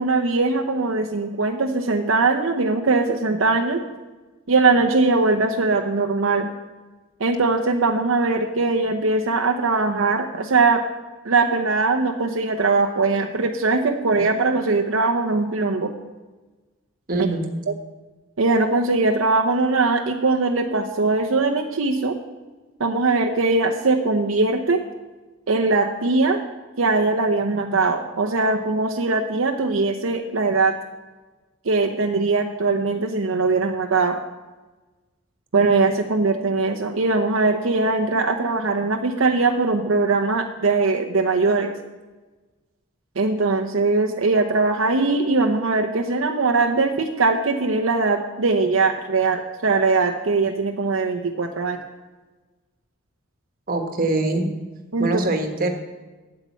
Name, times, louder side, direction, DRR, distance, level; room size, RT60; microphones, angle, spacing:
voice 1, 0.0-3.8 4.5-6.5 7.2-10.8 11.2-15.9 17.2-17.3 17.7-17.8 18.4-22.1 22.8-24.8 25.5-26.4 26.8-30.7 31.7-34.2 35.5-41.7 43.2-51.8 54.9-55.1, right 3 dB, 80° right, 4 dB, 0.7 m, -21 dB
voice 2, 17.1-17.5 53.7-54.5 55.0-55.7, right 2 dB, 45° right, 4 dB, 1.3 m, -23 dB
8.4 x 6.7 x 8.3 m, 1.2 s
head